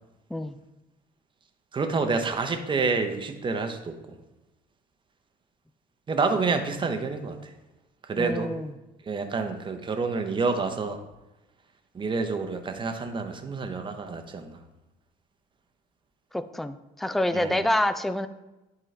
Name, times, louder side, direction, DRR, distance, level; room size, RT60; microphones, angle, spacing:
voice 1, 1.7-3.9 6.1-7.4 8.1-8.5 9.1-11.0 11.9-14.6 17.3-17.6, right 4 dB, 30° right, 6 dB, 0.8 m, -28 dB
voice 2, 8.2-8.7 16.3-18.3, left 1 dB, ahead, 12 dB, 0.3 m, -27 dB
10.5 x 3.9 x 3.3 m, 1.0 s
cardioid pair, 110°, 17 cm